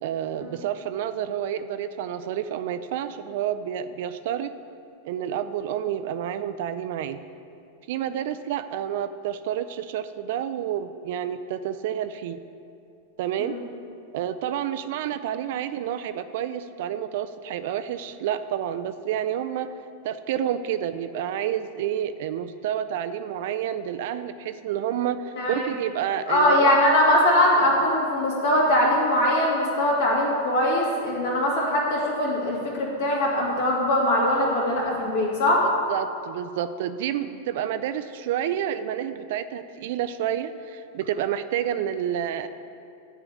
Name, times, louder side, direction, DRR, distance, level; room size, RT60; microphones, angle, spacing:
voice 1, 0.0-4.5 5.0-7.2 7.9-12.4 13.2-13.6 14.1-19.7 20.0-26.8 35.9-42.5, right 10 dB, 50° right, 11 dB, 0.4 m, -29 dB
voice 2, 26.3-35.6, left 1 dB, 55° left, -3 dB, 2.5 m, -21 dB
10.0 x 4.9 x 8.1 m, 2.6 s
figure-of-eight pair, 90°, 0 cm